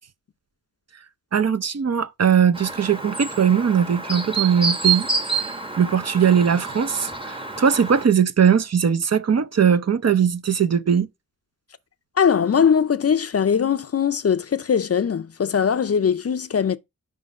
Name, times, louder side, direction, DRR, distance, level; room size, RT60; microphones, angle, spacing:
voice 1, 1.3-11.1, right 7 dB, 50° right, 0.6 m, -20 dB
Chirp tweet, 2.5-8.1, right 5 dB, 15° right, 1.0 m, -28 dB
voice 2, 12.2-16.8, left 7 dB, 45° left, 0.5 m, -20 dB
5.1 x 3.7 x 5.2 m
cardioid pair, 45°, 33 cm